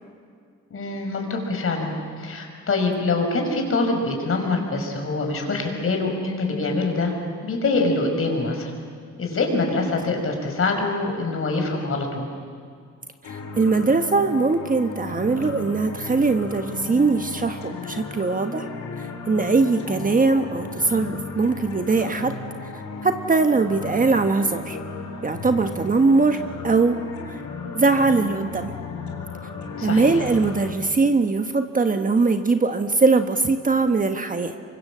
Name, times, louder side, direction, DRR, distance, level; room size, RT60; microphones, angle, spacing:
voice 1, 0.7-7.1 7.4-8.7 9.2-12.2 29.8-30.2, left 3 dB, 45° left, 3 dB, 5.5 m, -24 dB
sound 1, 13.2-30.7, left 3 dB, 70° left, 3.6 m, -35 dB
voice 2, 13.2-18.7 19.0-22.3 22.6-24.8 25.2-27.4 27.7-28.7 29.8-34.5, right 3 dB, 25° right, 7 dB, 1.2 m, -21 dB
25.5 x 24.0 x 7.5 m, 2.2 s
cardioid pair, 90°, 30 cm